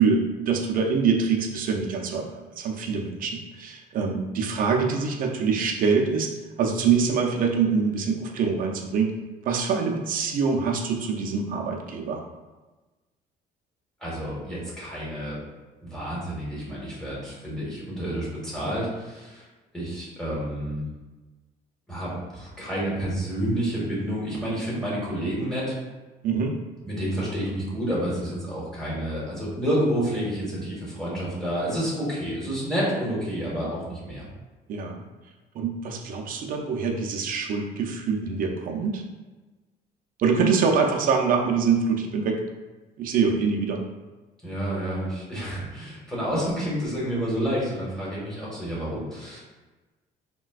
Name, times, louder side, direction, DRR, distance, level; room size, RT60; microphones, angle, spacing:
voice 1, 0.0-6.3 6.6-9.1 9.4-12.2 26.2-26.6 34.7-35.0 35.5-39.0 40.2-42.4 43.0-43.8, right 5 dB, 55° right, 1 dB, 0.5 m, -24 dB
voice 2, 14.0-15.4 15.8-19.4 19.7-20.8 21.9-25.7 26.8-34.3 44.4-49.4, equal, 5° left, -7 dB, 1.4 m, -29 dB
4.0 x 2.2 x 2.3 m, 1.2 s
cardioid pair, 110°, 17 cm